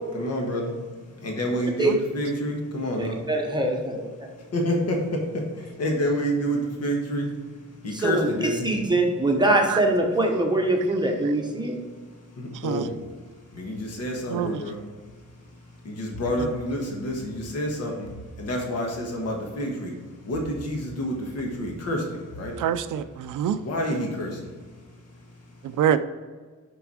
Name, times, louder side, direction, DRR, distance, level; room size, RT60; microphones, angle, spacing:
voice 1, 0.1-0.7 1.2-3.2 4.5-5.4 5.8-7.3 7.8-8.7 12.6-13.0 13.5-14.7 15.8-18.1 18.4-19.9 20.3-22.0 22.4-22.5 23.6-24.4, equal, 55° left, 1 dB, 1.6 m, -28 dB
voice 2, 3.0-4.1 7.9-11.8, right 2 dB, 15° right, 0 dB, 1.0 m, -23 dB
voice 3, 22.6-23.6 25.8-26.0, right 9 dB, 90° right, 11 dB, 0.5 m, -25 dB
6.9 x 6.2 x 4.8 m, 1.5 s
wide cardioid pair, 155°, 31 cm